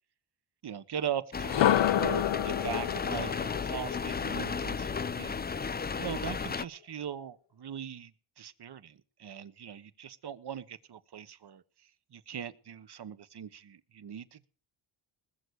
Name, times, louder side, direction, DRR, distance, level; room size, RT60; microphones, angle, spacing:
voice 1, 0.6-5.3 6.0-14.5, right 8 dB, 50° right, 14 dB, 1.4 m, -40 dB
sound 1, 1.3-6.7, left 5 dB, 20° left, 0.6 m, -34 dB
sound 2, 1.4-5.4, left 11 dB, 60° left, 0.9 m, -30 dB
20.5 x 6.8 x 6.5 m, 0.40 s
cardioid pair, 70°, 50 cm